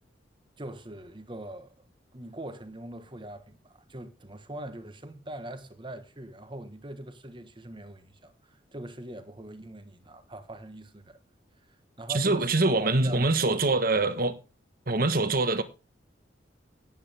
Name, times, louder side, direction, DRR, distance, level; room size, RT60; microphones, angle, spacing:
voice 1, 0.6-1.7 2.1-11.2 12.0-12.5 12.8-14.1, right 1 dB, 25° right, 1.4 m, -42 dB
voice 2, 12.1-14.4 14.9-15.6, right 2 dB, 50° right, 1.4 m, -24 dB
16.0 x 9.1 x 3.5 m
head